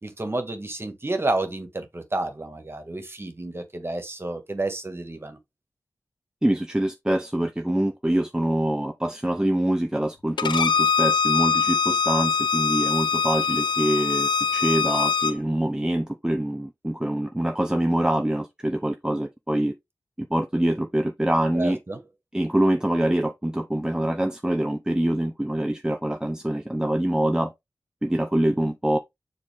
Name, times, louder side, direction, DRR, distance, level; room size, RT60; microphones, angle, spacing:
voice 1, 0.0-5.4 21.6-22.0, right 2 dB, 30° right, 1.9 m, -30 dB
voice 2, 6.4-19.7 20.2-21.8 22.3-27.5 28.0-29.0, right 1 dB, 10° right, 0.8 m, -25 dB
Bowed string instrument, 10.4-15.3, left 5 dB, 85° left, 0.6 m, -23 dB
7.3 x 4.0 x 3.6 m
wide cardioid pair, 100°, 8 cm